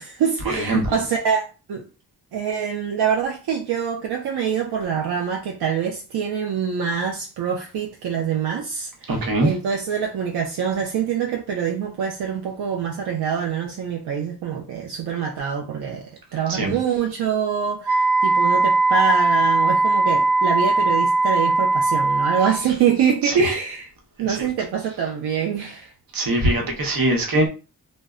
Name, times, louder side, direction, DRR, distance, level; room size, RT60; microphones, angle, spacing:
voice 1, 0.0-1.9 2.3-23.9 24.2-25.9, right 7 dB, 80° right, 0.5 m, -25 dB
voice 2, 9.1-9.5 16.5-16.7 23.2-23.3 24.3-24.5 26.1-27.5, right 1 dB, 60° right, 0.9 m, -21 dB
Wind instrument woodwind instrument, 17.8-22.6, right 3 dB, 25° right, 1.1 m, -19 dB
2.1 x 2.0 x 3.5 m
cardioid pair, 75°, 39 cm